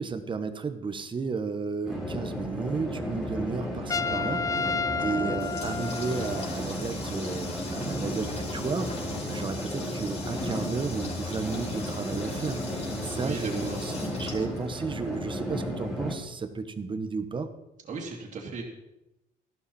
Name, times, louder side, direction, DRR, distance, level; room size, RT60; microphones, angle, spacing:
voice 1, 0.0-4.8 5.0-8.9 9.3-13.9 14.2-17.5, right 4 dB, 30° right, 9 dB, 1.2 m, -33 dB
sound 1, 1.8-16.1, equal, ahead, 3.9 m, -34 dB
Trumpet, 3.9-6.6, left 4 dB, 20° left, 0.5 m, -31 dB
Water tap faucet, 5.0-15.2, left 3 dB, 40° left, 4.9 m, -42 dB
voice 2, 13.1-13.9 17.9-18.6, right 4 dB, 45° right, -2 dB, 2.8 m, -37 dB
13.5 x 12.5 x 4.3 m, 0.93 s
cardioid pair, 110°, 17 cm